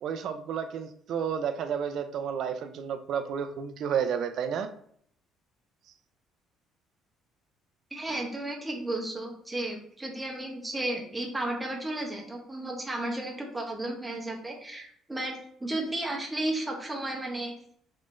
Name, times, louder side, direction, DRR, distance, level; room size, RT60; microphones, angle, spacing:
voice 1, 0.0-4.7, right 7 dB, 55° right, 8 dB, 0.3 m, -31 dB
voice 2, 7.9-17.5, right 1 dB, 10° right, 0 dB, 0.7 m, -33 dB
3.6 x 3.2 x 2.5 m, 0.64 s
cardioid pair, 150°, 0 cm